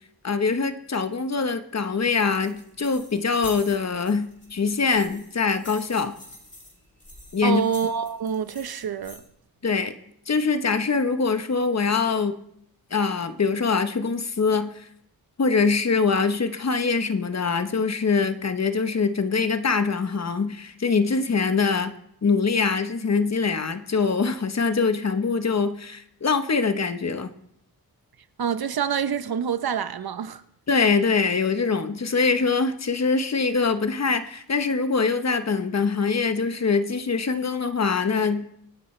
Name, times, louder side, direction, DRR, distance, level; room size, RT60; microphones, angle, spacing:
voice 1, 0.2-6.1 7.3-7.6 9.6-9.9 10.3-12.4 12.9-14.9 15.4-21.9 22.2-27.3 30.7-38.4, left 4 dB, 45° left, 1.1 m, -23 dB
sound 1, 2.4-9.2, left 1 dB, 20° left, 3.4 m, -46 dB
voice 2, 7.4-9.2 28.4-30.4, right 7 dB, 75° right, 0.9 m, -26 dB
26.0 x 10.0 x 3.3 m
wide cardioid pair, 85°, 37 cm